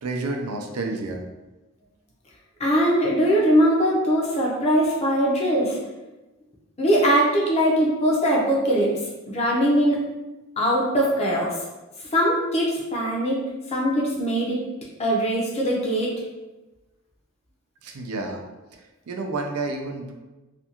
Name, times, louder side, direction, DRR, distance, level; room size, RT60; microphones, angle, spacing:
voice 1, 0.0-1.2 17.8-18.4 19.1-20.1, right 3 dB, 90° right, 2 dB, 0.4 m, -29 dB
voice 2, 2.6-5.8 6.8-9.0 9.3-10.0 10.6-11.6 12.1-14.7 15.0-16.1, equal, 30° left, -3 dB, 0.5 m, -21 dB
2.5 x 2.3 x 2.8 m, 1.1 s
head